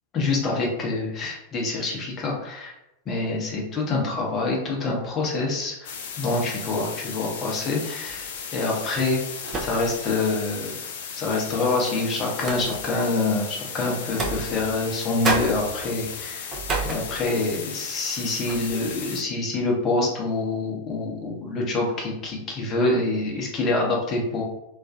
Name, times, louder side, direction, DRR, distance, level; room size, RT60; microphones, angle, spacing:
voice 1, 0.1-2.8 3.1-5.9 6.2-9.2 9.6-10.8 11.1-16.5 16.8-24.4, left 3 dB, 30° left, -2 dB, 0.7 m, -26 dB
sound 1, 5.8-19.2, left 6 dB, 55° left, 0.4 m, -36 dB
sound 2, 8.1-8.4 9.4-10.1 10.5-10.6 11.6-13.0 14.0-15.0 15.2-17.6 18.0-18.1 18.5-18.8, right 3 dB, 25° right, 0.5 m, -31 dB
2.4 x 2.3 x 2.6 m, 0.89 s
figure-of-eight pair, 90°, 0 cm